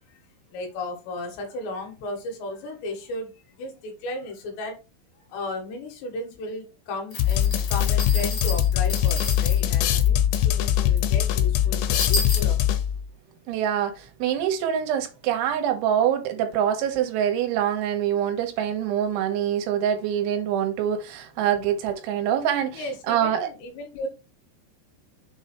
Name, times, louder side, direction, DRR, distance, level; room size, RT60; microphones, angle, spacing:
voice 1, 0.5-4.8 5.3-12.8 22.7-24.1, left 2 dB, 70° left, 3.4 m, -35 dB
sound 1, 7.1-9.8 10.0-10.1 10.3-10.4 11.0-11.1 11.4-11.5 11.9-12.4, left 2 dB, 45° left, 3.2 m, -31 dB
sound 2, 7.2-13.1, left 11 dB, 90° left, 3.1 m, -22 dB
voice 2, 13.5-23.5, right 9 dB, 85° right, 3.4 m, -25 dB
7.3 x 3.1 x 4.4 m
omnidirectional pair, 5.4 m